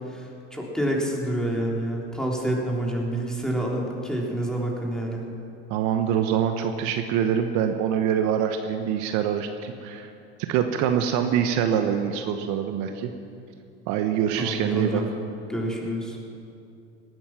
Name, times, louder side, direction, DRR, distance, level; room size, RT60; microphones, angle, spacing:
voice 1, 0.1-5.2 14.4-15.0 15.5-16.2, right 1 dB, ahead, -2 dB, 3.6 m, -28 dB
voice 2, 5.7-10.1 10.5-13.1 13.9-15.0, right 8 dB, 55° right, 6 dB, 1.1 m, -24 dB
18.5 x 12.5 x 6.1 m, 2.6 s
hypercardioid pair, 85°, 34 cm